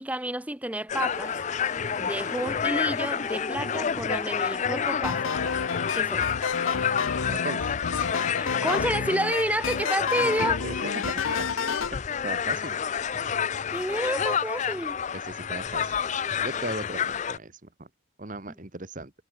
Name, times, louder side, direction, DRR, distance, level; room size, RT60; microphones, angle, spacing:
voice 1, 0.0-1.3 2.0-5.3 5.9-6.3 8.4-10.6 13.7-15.0, right 1 dB, 5° right, 1.6 m, -30 dB
sound 1, 0.9-17.4, left 7 dB, 35° left, 0.4 m, -29 dB
sound 2, 1.1-9.2 10.5-10.6, left 2 dB, 15° left, 7.1 m, -46 dB
sound 3, 5.0-12.0, left 5 dB, 90° left, 0.8 m, -30 dB
voice 2, 7.3-7.6 10.2-11.4 11.9-12.8 15.1-16.0 16.4-17.9 18.2-19.1, right 2 dB, 40° right, 1.6 m, -37 dB
head